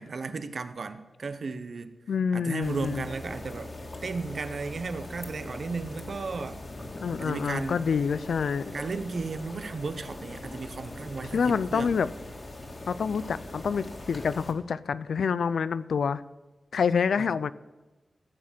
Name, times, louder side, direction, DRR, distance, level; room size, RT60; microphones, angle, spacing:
voice 1, 0.0-1.9 2.3-3.7 4.0-6.6 7.2-7.8 8.7-12.0 17.2-17.3, right 4 dB, 60° right, 11 dB, 0.9 m, -34 dB
voice 2, 2.1-3.1 7.0-8.7 11.3-12.1 12.9-16.2 16.7-17.5, left 6 dB, 85° left, 17 dB, 0.4 m, -27 dB
sound 1, 2.6-14.5, left 2 dB, 40° left, 2.0 m, -41 dB
15.5 x 7.3 x 7.5 m, 1.1 s
wide cardioid pair, 100°, 0 cm